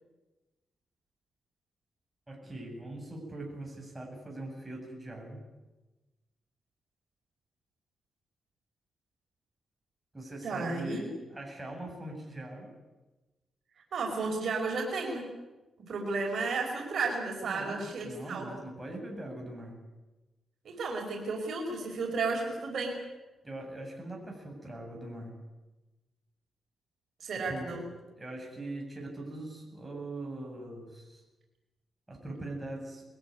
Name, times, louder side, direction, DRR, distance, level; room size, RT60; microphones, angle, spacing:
voice 1, 2.3-5.4 10.1-12.7 17.5-19.8 23.4-25.4 27.3-27.9 28.2-31.2 32.1-33.0, right 2 dB, 15° right, 0 dB, 8.0 m, -41 dB
voice 2, 10.4-11.1 13.9-15.2 15.9-18.5 20.7-22.9 27.2-27.8, right 3 dB, 65° right, 1 dB, 5.3 m, -33 dB
22.5 x 16.0 x 9.8 m, 1.1 s
cardioid pair, 80°, 0 cm